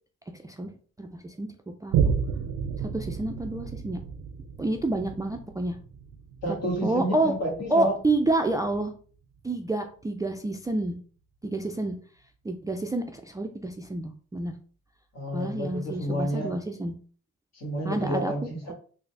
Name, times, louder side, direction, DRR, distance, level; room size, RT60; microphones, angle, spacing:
voice 1, 0.3-0.7 1.0-1.5 1.8-2.0 2.8-4.0 4.6-5.8 6.8-7.3 7.7-8.9 9.4-11.0 11.4-11.9 12.4-14.5 15.3-16.9 17.8-18.3, right 2 dB, 10° right, 5 dB, 0.3 m, -28 dB
Boom, 1.9-8.8 9.4-9.5, right 7 dB, 85° right, 0.5 m, -32 dB
voice 2, 6.4-7.9 15.1-16.6 17.5-18.7, equal, 60° left, 0 dB, 1.5 m, -30 dB
3.8 x 2.0 x 3.3 m, 0.43 s
cardioid pair, 90°, 30 cm